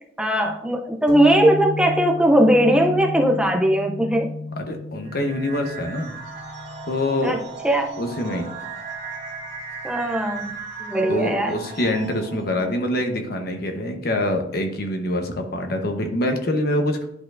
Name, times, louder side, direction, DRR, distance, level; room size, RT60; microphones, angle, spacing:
voice 1, 0.2-4.3 7.2-7.4 7.6-7.9 9.8-10.5 10.8-11.5, right 1 dB, 5° right, 2 dB, 0.5 m, -19 dB
sound 1, 1.1-8.4, left 2 dB, 45° right, 1.3 m, -34 dB
voice 2, 4.6-6.1 6.9-7.4 8.0-8.5 11.1-17.1, left 1 dB, 60° left, 4 dB, 1.0 m, -25 dB
sound 2, 5.0-12.6, right 4 dB, 80° right, 1.8 m, -36 dB
11.0 x 4.3 x 2.5 m, 0.74 s
head